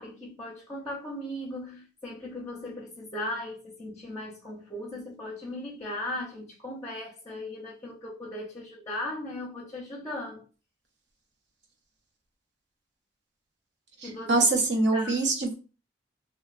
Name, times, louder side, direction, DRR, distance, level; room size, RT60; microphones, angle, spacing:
voice 1, 0.0-10.4 14.0-14.5 14.9-15.2, left 1 dB, 15° left, 0.5 m, -37 dB
voice 2, 14.0-15.5, right 2 dB, 70° right, 0.7 m, -24 dB
2.9 x 2.0 x 2.4 m
head